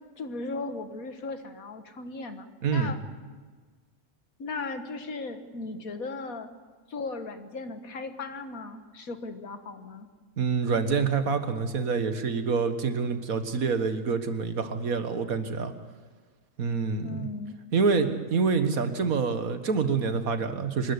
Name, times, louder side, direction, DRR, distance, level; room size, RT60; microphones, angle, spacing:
voice 1, 0.2-3.0 4.4-6.5 6.9-10.1 17.0-17.6, left 3 dB, 75° left, 8 dB, 2.0 m, -37 dB
voice 2, 2.6-2.9 10.4-15.7 16.6-17.3 17.7-20.9, right 5 dB, 75° right, 9 dB, 1.9 m, -26 dB
25.0 x 13.5 x 9.7 m, 1.4 s
omnidirectional pair, 1.5 m